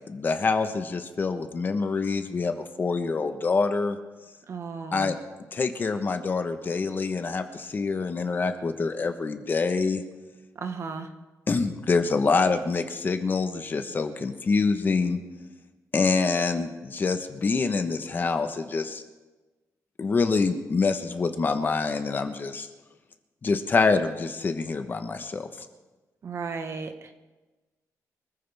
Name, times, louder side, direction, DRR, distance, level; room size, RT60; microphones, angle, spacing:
voice 1, 0.1-4.0 4.9-5.2 5.5-10.0 11.5-15.2 15.9-19.0 20.0-22.7 23.4-25.7, left 4 dB, 35° left, 7 dB, 1.1 m, -26 dB
voice 2, 4.5-5.1 10.6-11.1 26.2-27.1, right 5 dB, 50° right, 7 dB, 1.4 m, -34 dB
25.0 x 14.5 x 3.5 m, 1.2 s
wide cardioid pair, 150°, 6 cm